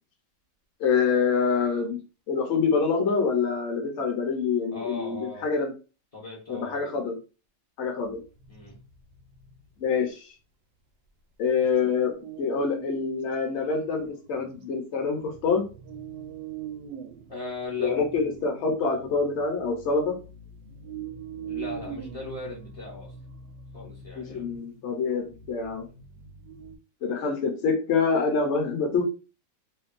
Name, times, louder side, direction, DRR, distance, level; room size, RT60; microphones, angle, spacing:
voice 1, 0.8-5.7 6.5-7.2 7.8-8.2 9.8-10.3 11.4-15.6 17.8-20.2 24.2-25.9 27.0-29.0, left 5 dB, 55° left, 2 dB, 0.8 m, -26 dB
voice 2, 4.7-5.5 6.1-6.9 8.5-8.8 17.3-17.9 21.4-23.1 23.7-24.4, left 3 dB, 40° left, -5 dB, 0.5 m, -38 dB
sound 1, 8.0-9.8 11.6-13.0 13.3-13.4 14.0-14.4 15.0-26.8, right 7 dB, 75° right, 1.1 m, -43 dB
2.8 x 2.2 x 2.5 m, 0.33 s
omnidirectional pair, 1.8 m